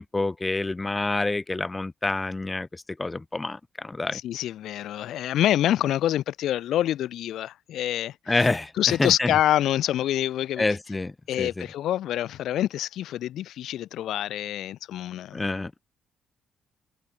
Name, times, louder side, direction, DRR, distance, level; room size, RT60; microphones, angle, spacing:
voice 1, 0.0-4.2 8.3-9.3 10.6-11.7 15.3-15.7, left 2 dB, 20° left, 0.4 m, -28 dB
voice 2, 4.1-8.4 8.8-10.6 11.3-15.4, left 12 dB, 80° left, 1.4 m, -26 dB
cardioid pair, 90°, 0 cm